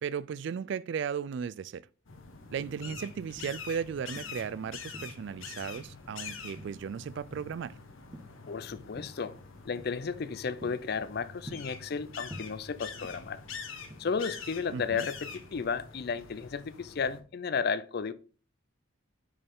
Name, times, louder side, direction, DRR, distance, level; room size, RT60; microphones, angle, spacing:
voice 1, 0.0-1.8 2.5-7.7 14.7-15.1, right 7 dB, 60° right, 0.3 m, -36 dB
sound 1, 2.1-17.2, left 5 dB, 75° left, 1.1 m, -45 dB
sound 2, 2.6-3.7 4.1-5.3 5.8-6.1 6.6-7.7 8.0-8.5 9.0-9.3 9.8-10.0 10.4-12.0 12.3-13.4 13.7-15.2 15.6-15.9, right 1 dB, 20° right, 1.1 m, -48 dB
voice 2, 8.5-9.4 9.6-13.4 14.0-18.1, left 5 dB, 50° left, 0.4 m, -33 dB
6.6 x 5.5 x 3.6 m
head